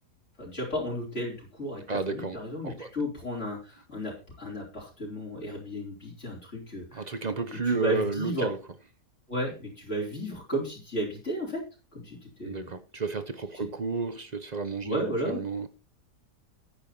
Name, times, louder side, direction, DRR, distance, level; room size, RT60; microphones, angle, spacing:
voice 1, 0.4-7.2 7.5-8.5 9.3-11.6 11.9-12.7 13.6-13.7 14.8-15.4, equal, 45° left, 4.6 m, -34 dB
voice 2, 1.9-2.4 2.6-2.9 6.9-8.6 12.5-15.7, right 4 dB, 35° right, 0.7 m, -32 dB
10.0 x 8.8 x 4.3 m
omnidirectional pair, 1.7 m